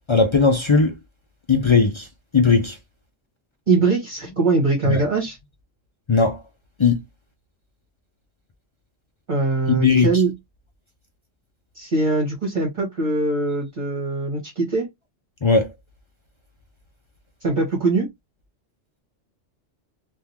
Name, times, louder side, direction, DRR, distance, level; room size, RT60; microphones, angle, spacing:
voice 1, 0.1-0.9 1.5-2.1 2.3-2.8 4.9-5.0 6.1-6.4 6.8-7.0 9.7-10.1 15.4-15.7, left 4 dB, 50° left, 0.3 m, -17 dB
voice 2, 3.7-5.4 9.3-10.3 11.7-14.9 17.4-18.1, right 3 dB, 40° right, 1.4 m, -22 dB
3.5 x 2.5 x 2.9 m
omnidirectional pair, 1.3 m